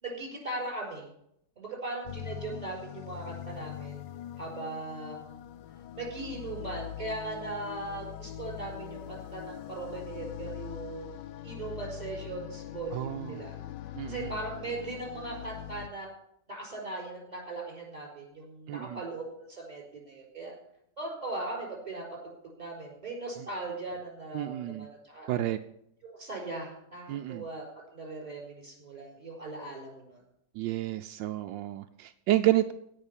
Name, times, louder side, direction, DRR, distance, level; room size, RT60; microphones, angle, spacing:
voice 1, 0.0-1.1 1.6-4.0 4.4-5.4 6.0-11.1 11.4-13.5 14.1-16.1 16.5-20.5 21.0-22.0 22.6-25.3 26.0-27.7 27.9-30.2, right 2 dB, 20° right, -1 dB, 5.1 m, -39 dB
sound 1, 2.1-15.9, left 12 dB, 80° left, 1.3 m, -42 dB
voice 2, 12.9-13.4 13.9-14.3 18.7-19.0 24.3-24.9 25.3-25.6 27.1-27.4 30.5-32.7, right 14 dB, 85° right, 8 dB, 1.3 m, -30 dB
17.0 x 5.7 x 8.9 m, 0.75 s
omnidirectional pair, 2.0 m